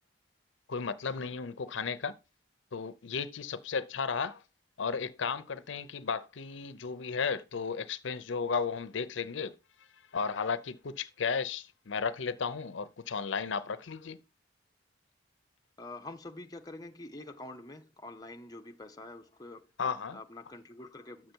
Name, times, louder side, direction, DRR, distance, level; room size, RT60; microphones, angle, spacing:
voice 1, 0.7-2.1 2.7-4.4 4.8-9.5 10.1-14.2 19.8-20.2, left 5 dB, 75° left, 0.6 m, -34 dB
voice 2, 15.8-19.7 20.1-21.3, left 2 dB, 20° left, 0.6 m, -46 dB
7.4 x 6.5 x 4.5 m
head